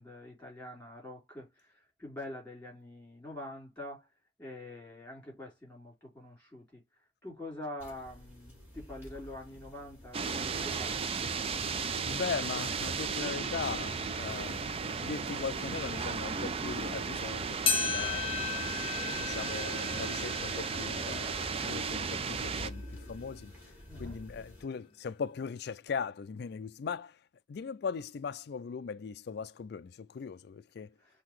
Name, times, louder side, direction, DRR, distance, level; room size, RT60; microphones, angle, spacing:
voice 1, 0.0-4.1 4.4-6.8 7.2-11.3 23.9-24.2 31.0-31.2, left 1 dB, 10° left, 3.4 m, -45 dB
sound 1, 7.8-24.6, left 1 dB, 10° right, 3.2 m, -50 dB
sound 2, 10.1-22.7, right 5 dB, 30° right, 0.4 m, -35 dB
voice 2, 12.1-14.6 15.0-18.4 19.0-23.5 24.0-27.2 27.5-30.9, left 5 dB, 55° left, 0.3 m, -39 dB
sound 3, 17.7-22.3 22.8-22.9 23.7-23.8 24.7-24.8, left 6 dB, 25° left, 0.7 m, -35 dB
5.7 x 2.8 x 3.0 m
head